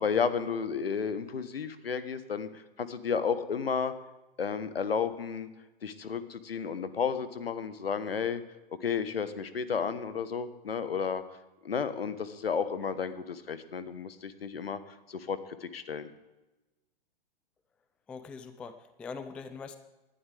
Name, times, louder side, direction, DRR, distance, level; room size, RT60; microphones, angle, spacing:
voice 1, 0.0-3.9 4.4-5.5 5.8-8.4 8.8-11.2 11.6-14.8 15.1-16.1, left 6 dB, 80° left, 13 dB, 1.2 m, -32 dB
voice 2, 18.1-19.8, left 5 dB, 5° left, 11 dB, 0.3 m, -42 dB
18.5 x 11.5 x 3.4 m, 1.1 s
figure-of-eight pair, 110°, 29 cm